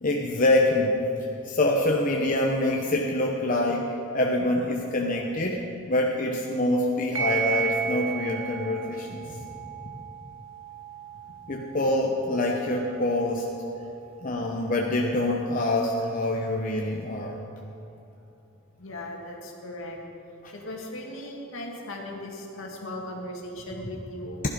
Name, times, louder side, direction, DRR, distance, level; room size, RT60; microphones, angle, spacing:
voice 1, 0.0-9.4 11.5-13.5 14.2-17.4, left 1 dB, 40° left, -1 dB, 0.9 m, -25 dB
sound 1, 7.1-16.2, right 8 dB, 65° right, 1.5 m, -36 dB
voice 2, 9.2-9.6 11.3-11.4 18.8-20.0 20.5-24.4, left 1 dB, 70° left, 0 dB, 2.1 m, -38 dB
16.0 x 11.5 x 5.2 m, 2.8 s
head